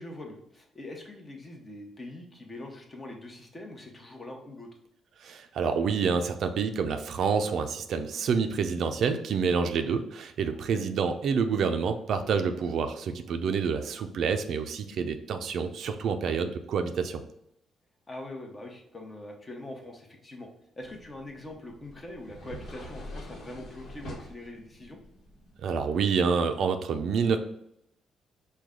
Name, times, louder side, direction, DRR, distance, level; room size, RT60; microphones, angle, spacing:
voice 1, 0.0-4.7 10.5-10.8 14.9-15.1 18.1-20.5 20.8-25.0, left 1 dB, 25° left, 2 dB, 0.9 m, -43 dB
voice 2, 5.2-17.2 25.6-27.4, right 6 dB, 65° right, 8 dB, 0.4 m, -28 dB
sound 1, 20.8-26.3, equal, 65° left, 1.1 m, -46 dB
4.7 x 2.2 x 3.7 m, 0.77 s
cardioid pair, 90°, 0 cm